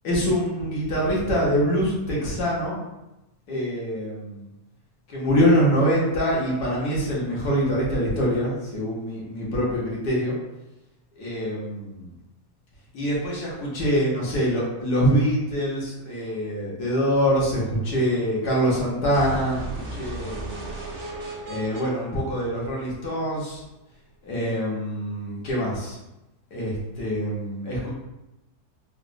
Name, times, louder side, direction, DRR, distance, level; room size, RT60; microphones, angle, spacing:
voice 1, 0.0-2.8 3.5-4.4 5.1-10.4 11.2-12.1 12.9-20.8 21.4-23.6 24.2-26.0 26.5-27.9, equal, 75° left, -5 dB, 1.5 m, -24 dB
sound 1, 19.1-23.1, right 2 dB, 55° right, 0.5 m, -35 dB
4.0 x 2.0 x 2.5 m, 0.96 s
omnidirectional pair, 1.7 m